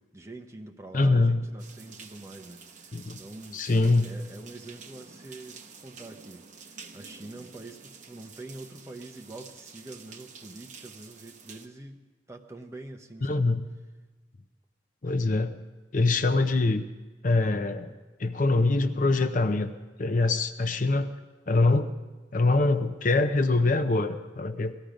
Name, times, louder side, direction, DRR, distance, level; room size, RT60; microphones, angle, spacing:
voice 1, 0.0-3.6 4.0-12.0 12.3-13.5, right 2 dB, 15° right, 3 dB, 0.9 m, -45 dB
voice 2, 0.9-1.4 2.9-3.2 3.5-4.1 13.2-13.6 15.0-15.6 15.9-16.8 17.2-17.9 18.2-19.7 20.0-21.1 21.5-21.9 22.3-24.7, left 3 dB, 45° left, 9 dB, 0.6 m, -24 dB
sound 1, 1.6-11.7, right 5 dB, 40° right, 1.0 m, -49 dB
18.5 x 13.0 x 5.1 m, 1.3 s
head